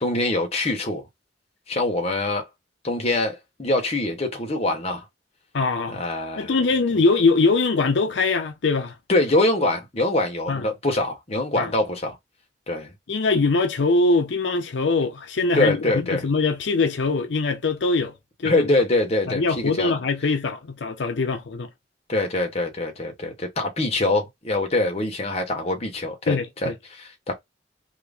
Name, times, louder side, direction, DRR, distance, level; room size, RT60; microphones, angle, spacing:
voice 1, 0.0-1.0 1.7-2.5 2.8-5.0 5.9-6.6 9.1-12.2 12.7-12.9 15.5-16.2 18.4-19.9 22.1-27.3, left 2 dB, 35° left, 0.9 m, -24 dB
voice 2, 5.5-6.0 6.4-9.0 10.5-10.6 11.6-11.7 13.1-18.1 18.4-18.7 19.3-21.7 26.3-26.7, left 3 dB, 85° left, 0.6 m, -22 dB
2.9 x 2.5 x 3.3 m
head